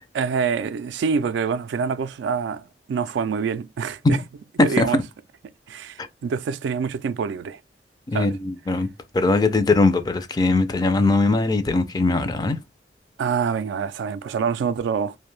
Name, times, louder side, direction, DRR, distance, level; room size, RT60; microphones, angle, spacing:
voice 1, 0.1-4.2 4.6-5.0 5.7-7.6 8.1-8.3 13.2-15.2, right 6 dB, 90° right, 0.3 m, -26 dB
voice 2, 8.1-8.9 9.1-12.6, left 3 dB, 25° left, 0.3 m, -20 dB
2.5 x 2.1 x 3.1 m
head